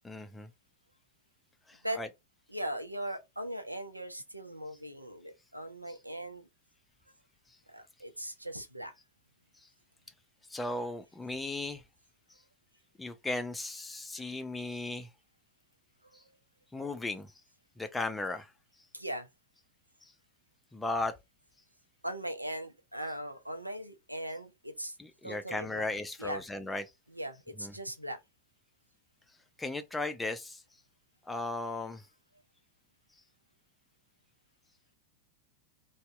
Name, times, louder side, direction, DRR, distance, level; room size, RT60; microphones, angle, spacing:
voice 1, 0.0-0.5 1.7-2.1 10.5-11.8 13.0-15.1 16.7-17.3 17.8-18.5 20.0-20.1 20.7-21.1 25.0-26.8 27.6-27.7 29.6-30.6 31.3-32.1, left 2 dB, 10° left, 0.4 m, -36 dB
voice 2, 2.5-6.5 7.7-8.9 16.0-16.3 18.9-19.3 22.0-25.0 25.2-25.8 26.2-26.4 27.1-28.2, right 1 dB, 85° right, 0.4 m, -39 dB
2.7 x 2.1 x 2.3 m
figure-of-eight pair, 90°, 0 cm